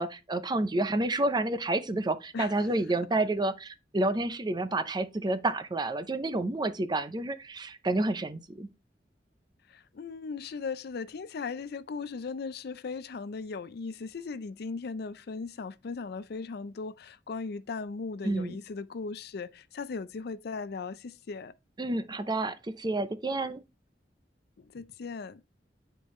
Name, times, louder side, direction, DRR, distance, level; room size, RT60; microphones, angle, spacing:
voice 1, 0.0-8.7 18.2-18.6 21.8-23.6, right 2 dB, 25° right, 0.6 m, -29 dB
voice 2, 2.3-2.7 9.7-21.5 24.6-25.4, left 4 dB, 65° left, 0.4 m, -38 dB
8.4 x 4.5 x 3.1 m
head